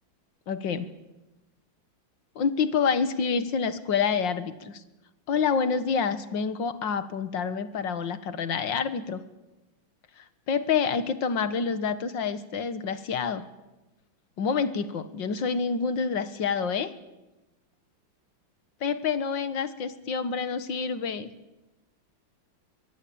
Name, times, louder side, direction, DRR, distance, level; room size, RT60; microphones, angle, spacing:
voice 1, 0.5-0.9 2.4-4.8 5.3-9.2 10.2-13.4 14.4-16.9 18.8-21.3, left 6 dB, 65° left, 12 dB, 2.1 m, -28 dB
24.0 x 20.5 x 8.8 m, 1.0 s
omnidirectional pair, 2.2 m